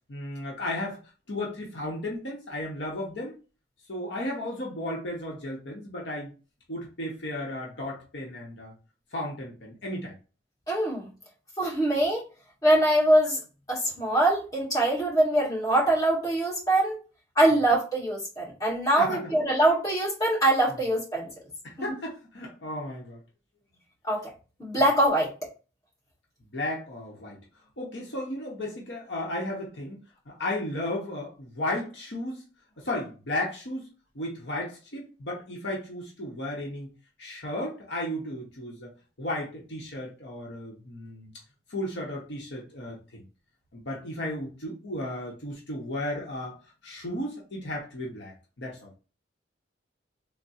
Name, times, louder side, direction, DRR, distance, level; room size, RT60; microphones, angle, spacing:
voice 1, 0.1-1.0 1.3-3.4 3.9-6.3 6.7-8.7 9.1-10.1 19.0-19.2 21.6-23.2 26.5-27.4 27.8-32.4 32.8-33.8 34.1-36.9 37.2-38.9 39.2-41.3 41.7-43.2 43.7-46.6 46.8-48.9, left 1 dB, 65° left, 0.8 m, -34 dB
voice 2, 10.7-11.1 11.6-12.2 12.6-13.4 13.7-17.0 17.3-21.3 24.1-24.3 24.6-25.3, right 1 dB, 20° left, 1.5 m, -23 dB
3.5 x 2.0 x 4.1 m
head